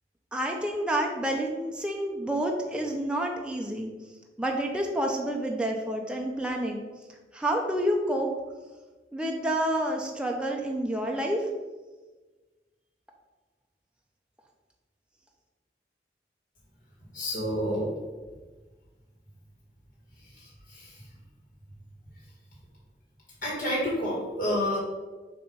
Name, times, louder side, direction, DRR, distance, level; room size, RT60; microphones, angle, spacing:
voice 1, 0.3-3.9 4.4-6.8 7.3-8.3 9.1-11.5, right 1 dB, 5° right, 0 dB, 0.5 m, -29 dB
voice 2, 17.1-17.9 20.3-21.0 23.4-24.8, equal, 45° left, -6 dB, 1.8 m, -29 dB
6.7 x 3.0 x 5.4 m, 1.3 s
head